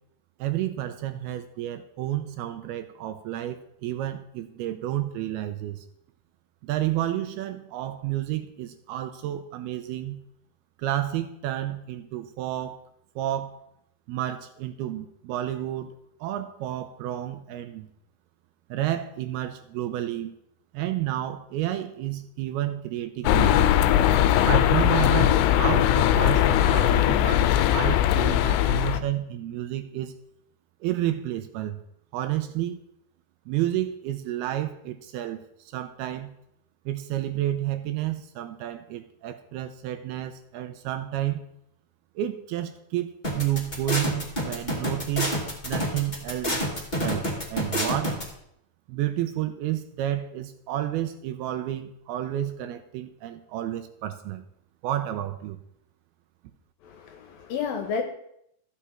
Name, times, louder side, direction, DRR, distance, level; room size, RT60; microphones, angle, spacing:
voice 1, 0.4-5.8 6.6-10.2 10.8-12.8 13.2-13.6 14.1-16.0 16.2-17.9 18.7-20.3 20.7-23.7 24.4-30.1 30.8-31.8 32.1-32.8 33.5-36.3 36.9-41.4 42.2-48.2 48.9-54.4 54.8-55.6, right 13 dB, 80° right, 9 dB, 2.4 m, -31 dB
sound 1, 23.3-29.0, left 11 dB, 90° left, 2.8 m, -20 dB
sound 2, 43.2-48.2, equal, 20° left, 1.3 m, -27 dB
voice 2, 56.8-58.0, left 6 dB, 70° left, 5 dB, 2.4 m, -31 dB
13.5 x 8.5 x 4.4 m, 0.75 s
omnidirectional pair, 4.9 m